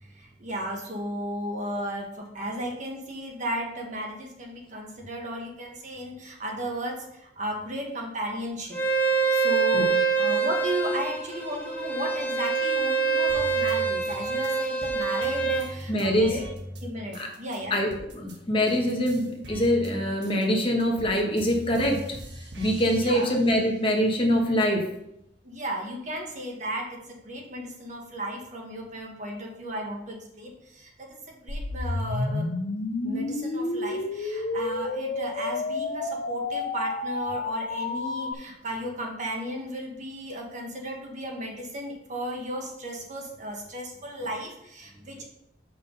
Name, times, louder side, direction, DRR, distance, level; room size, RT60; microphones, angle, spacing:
voice 1, 0.0-8.8 9.3-16.4 16.8-17.8 23.0-23.3 25.4-32.5 33.0-45.2, right 1 dB, 45° right, 0 dB, 1.6 m, -34 dB
Bowed string instrument, 8.7-15.6, right 5 dB, 10° left, 1.4 m, -25 dB
sound 1, 13.3-18.4 18.7-23.9 24.3-25.3, equal, 70° right, 1.4 m, -42 dB
voice 2, 15.9-16.3 17.1-17.3 17.7-22.0 22.6-24.8, equal, 30° left, 1 dB, 1.3 m, -24 dB
sound 2, 31.5-38.3, left 2 dB, 50° left, 0.6 m, -30 dB
6.2 x 5.6 x 5.4 m, 0.79 s
head